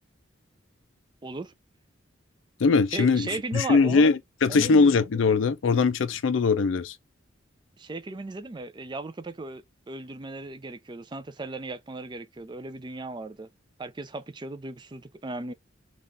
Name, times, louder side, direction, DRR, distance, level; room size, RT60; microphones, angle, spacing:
voice 1, 1.2-1.5 2.9-4.1 4.5-5.0 7.8-13.5 13.8-15.5, right 2 dB, 25° right, 0.4 m, -37 dB
voice 2, 2.6-6.9, left 4 dB, 75° left, 0.5 m, -21 dB
4.0 x 2.4 x 3.4 m
head